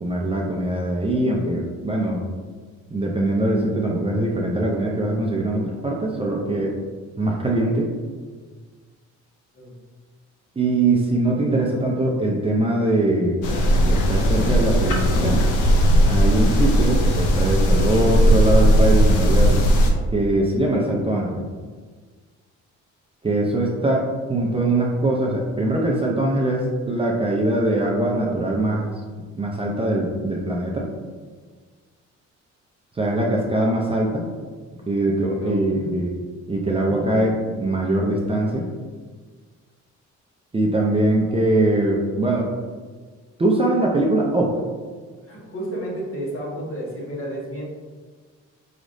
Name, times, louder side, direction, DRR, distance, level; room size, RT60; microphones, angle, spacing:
voice 1, 0.0-2.2 2.9-6.7 7.2-7.9 10.6-13.4 13.8-15.4 16.1-19.5 20.1-21.4 23.2-28.9 29.3-30.9 33.0-34.2 34.9-36.1 36.5-38.7 40.5-42.5 43.4-44.5, right 2 dB, 20° right, -2 dB, 0.5 m, -22 dB
sound 1, 13.4-19.9, equal, 80° left, 0.7 m, -17 dB
voice 2, 35.4-35.9 36.8-37.1 45.3-47.6, right 1 dB, 45° left, -4 dB, 1.4 m, -32 dB
4.9 x 3.1 x 2.6 m, 1.5 s
cardioid pair, 95°, 31 cm